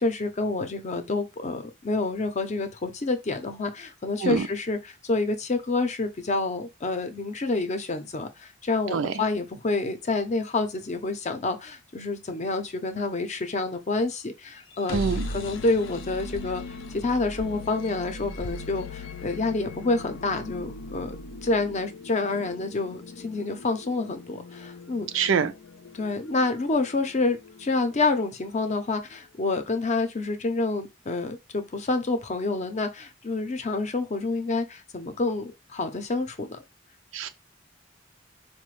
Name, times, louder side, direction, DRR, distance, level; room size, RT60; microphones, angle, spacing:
voice 1, 0.0-15.0 15.3-16.6 16.9-25.3 25.9-36.6, left 3 dB, 40° left, 0.5 m, -28 dB
sound 1, 14.6-28.5, left 2 dB, 90° left, 0.5 m, -39 dB
voice 2, 14.9-15.3 25.1-25.5 37.1-37.3, right 6 dB, 85° right, 0.4 m, -25 dB
4.0 x 2.2 x 3.1 m
head